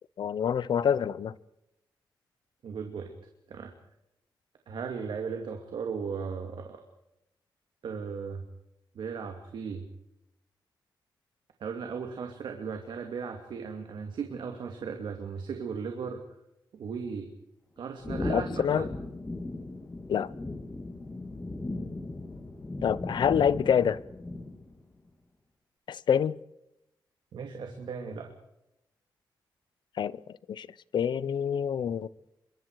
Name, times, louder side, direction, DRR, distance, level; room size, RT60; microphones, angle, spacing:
voice 1, 0.2-1.3 18.3-18.8 20.1-20.3 22.8-24.0 25.9-26.4 30.0-30.2 30.5-30.7 30.9-32.1, left 8 dB, 70° left, 0.8 m, -26 dB
voice 2, 2.6-3.1 3.5-3.7 4.7-6.8 7.8-8.4 8.9-9.8 11.6-16.2 16.7-17.3 17.8-18.9 27.3-28.3, right 6 dB, 75° right, 2.6 m, -36 dB
sound 1, 18.0-24.8, left 2 dB, 20° left, 2.5 m, -37 dB
27.0 x 23.5 x 4.8 m
wide cardioid pair, 130°, 8 cm